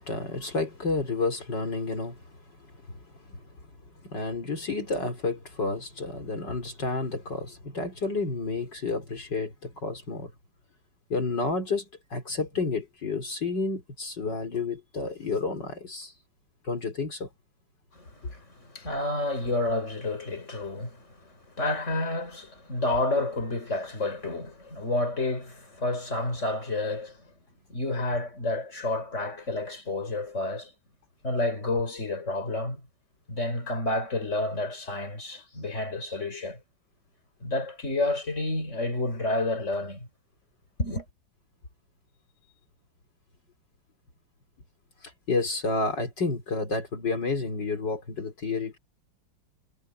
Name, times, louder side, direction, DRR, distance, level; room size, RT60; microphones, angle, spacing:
voice 1, 0.0-2.2 2.9-3.4 4.0-10.3 11.1-16.1 16.6-17.3 45.0-48.8, left 3 dB, 70° left, 4.9 m, -30 dB
voice 2, 17.9-27.2 27.7-30.7 31.2-32.8 33.3-36.6 37.4-40.1 40.8-41.0, left 2 dB, 40° left, 5.8 m, -30 dB
omnidirectional pair, 2.0 m